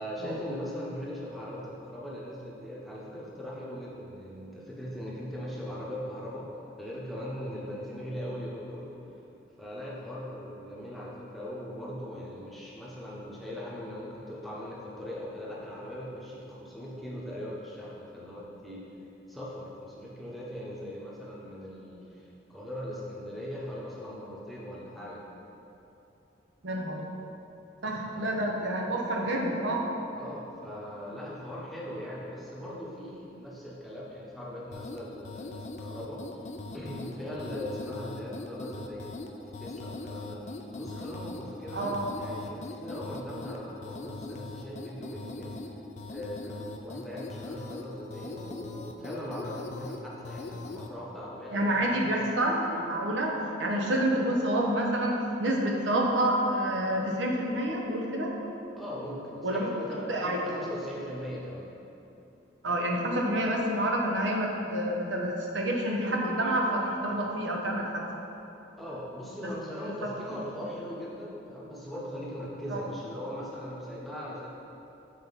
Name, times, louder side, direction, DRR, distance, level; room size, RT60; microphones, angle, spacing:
voice 1, 0.0-6.5 6.8-8.9 9.6-18.8 19.3-25.2 28.1-28.3 30.1-36.2 36.7-45.6 46.1-52.3 58.8-61.7 68.8-74.5, equal, ahead, -6 dB, 0.9 m, -40 dB
voice 2, 26.6-27.0 27.8-29.9 41.7-42.1 51.5-53.3 53.6-58.3 59.4-59.7 60.1-60.6 62.6-68.0 69.8-69.9 72.7-72.8, right 1 dB, 90° right, -1 dB, 0.9 m, -28 dB
sound 1, 34.7-50.9, left 3 dB, 40° left, 0.3 m, -41 dB
7.6 x 4.2 x 4.0 m, 3.0 s
head